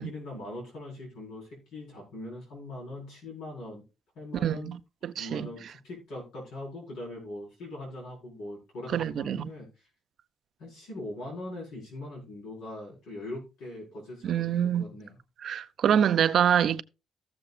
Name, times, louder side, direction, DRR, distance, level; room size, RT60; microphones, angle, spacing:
voice 1, 0.0-3.8 4.1-4.7 5.1-9.9 10.6-15.2, left 1 dB, 90° left, 4.6 m, -41 dB
voice 2, 4.4-4.8 5.0-5.5 8.9-9.5 14.2-14.8 15.4-16.8, right 9 dB, 65° right, 0.5 m, -25 dB
15.0 x 6.9 x 2.4 m
cardioid pair, 90°, 0 cm